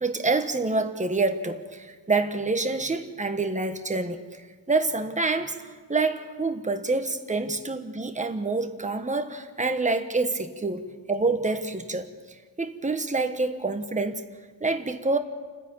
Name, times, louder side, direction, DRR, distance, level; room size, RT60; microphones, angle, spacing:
voice 1, 0.0-4.2 4.7-12.1 12.6-14.2 14.6-15.2, right 3 dB, 15° right, 6 dB, 1.2 m, -27 dB
29.5 x 10.0 x 8.7 m, 1.4 s
wide cardioid pair, 165°, 45 cm